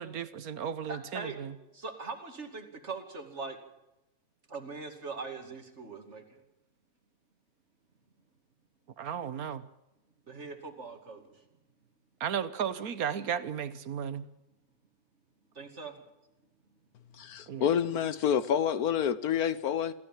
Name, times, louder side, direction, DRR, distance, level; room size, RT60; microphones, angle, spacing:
voice 1, 0.0-1.5 9.0-9.7 12.2-14.3 17.5-17.7, right 8 dB, 75° right, 1.5 m, -34 dB
voice 2, 0.9-1.4 1.7-3.6 4.5-6.4 10.3-11.2 15.5-16.0, right 4 dB, 50° right, 2.7 m, -41 dB
voice 3, 17.2-19.9, left 8 dB, 85° left, 1.5 m, -28 dB
27.5 x 13.5 x 7.5 m
omnidirectional pair, 1.5 m